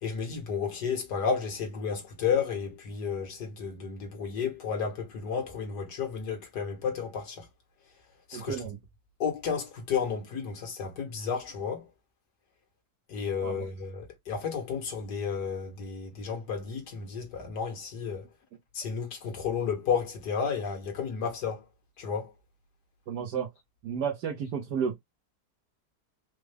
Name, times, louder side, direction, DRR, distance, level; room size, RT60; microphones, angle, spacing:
voice 1, 0.0-7.4 8.3-8.6 9.2-11.8 13.1-18.3 18.7-21.6 22.0-22.3, left 6 dB, 90° left, 2.0 m, -32 dB
voice 2, 8.3-8.8 13.4-13.7 18.5-18.6 23.1-23.5 23.8-25.0, right 7 dB, 90° right, 1.6 m, -32 dB
5.0 x 2.2 x 3.3 m
omnidirectional pair, 1.7 m